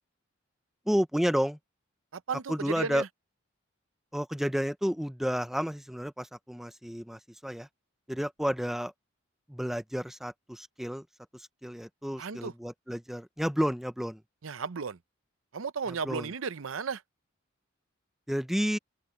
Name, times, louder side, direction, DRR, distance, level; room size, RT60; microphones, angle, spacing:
voice 1, 0.9-1.6 2.5-3.0 4.1-7.7 8.1-8.9 9.5-11.0 11.3-14.2 16.0-16.3 18.3-18.8, equal, ahead, 0.6 m, -31 dB
voice 2, 2.1-3.1 12.2-12.5 14.4-15.0 15.5-17.0, right 5 dB, 75° right, 0.7 m, -34 dB
head